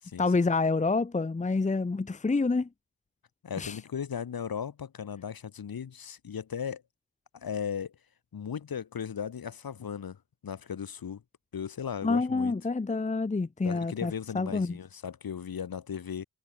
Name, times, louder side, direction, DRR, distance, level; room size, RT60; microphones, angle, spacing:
voice 1, 0.2-2.7 3.6-3.8 12.0-14.8, left 3 dB, 20° left, 0.8 m, -28 dB
voice 2, 3.4-6.8 7.3-8.0 8.3-11.2 11.5-12.5 13.6-16.3, left 7 dB, 70° left, 7.0 m, -37 dB
supercardioid pair, 40°, 36 cm